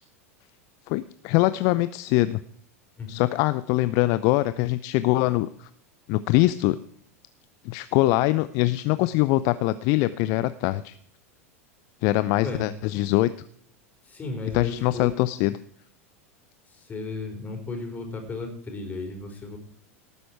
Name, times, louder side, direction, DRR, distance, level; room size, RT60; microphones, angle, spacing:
voice 1, 0.9-2.4 3.1-5.7 6.1-6.8 7.6-11.0 12.0-13.3 14.5-15.6, left 18 dB, 45° left, 14 dB, 0.5 m, -23 dB
voice 2, 14.0-15.1 16.7-19.6, left 3 dB, 20° left, 3 dB, 4.8 m, -34 dB
18.0 x 9.5 x 4.7 m, 0.62 s
figure-of-eight pair, 85°, 8 cm